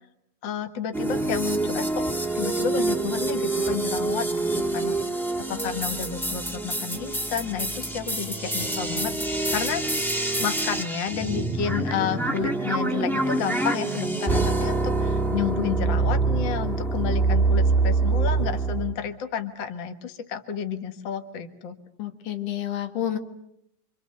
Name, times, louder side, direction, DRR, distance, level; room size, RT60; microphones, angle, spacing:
voice 1, 0.4-2.1 2.3-4.3 4.5-5.2 5.5-10.1 10.4-21.8, left 8 dB, 45° left, 7 dB, 1.8 m, -31 dB
sound 1, 0.9-18.9, right 3 dB, 5° left, 0.4 m, -26 dB
voice 2, 22.0-23.2, left 11 dB, 75° left, 6 dB, 3.2 m, -29 dB
27.5 x 25.5 x 6.8 m, 0.77 s
omnidirectional pair, 3.8 m